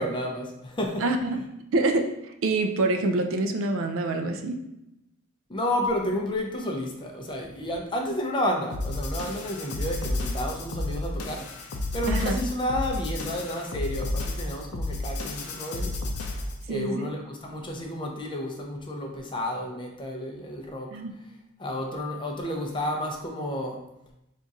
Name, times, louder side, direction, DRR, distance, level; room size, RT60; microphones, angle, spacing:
voice 1, 0.0-1.1 5.5-11.5 11.9-16.0 16.7-21.0 21.6-23.8, left 1 dB, 20° left, 1 dB, 0.5 m, -31 dB
voice 2, 1.0-1.4 1.7-4.6 12.1-12.4 16.7-17.1 20.9-21.1, right 2 dB, 60° right, 5 dB, 0.4 m, -26 dB
sound 1, 8.7-16.6, left 2 dB, 75° left, 0.5 m, -31 dB
3.6 x 2.4 x 4.0 m, 0.86 s
head